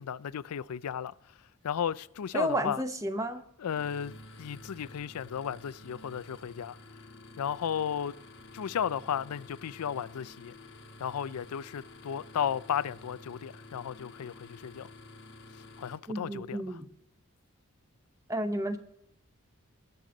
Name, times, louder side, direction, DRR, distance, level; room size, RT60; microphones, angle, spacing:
voice 1, 0.0-1.4 1.6-2.8 3.6-6.8 7.4-8.1 8.5-10.5 11.0-14.9 15.5-16.8, left 8 dB, 85° left, 0.4 m, -34 dB
voice 2, 2.3-3.4 16.1-16.9 18.3-18.8, right 1 dB, 15° right, 0.8 m, -31 dB
sound 1, 3.7-16.0, left 2 dB, 50° left, 1.3 m, -50 dB
20.0 x 6.9 x 3.9 m
head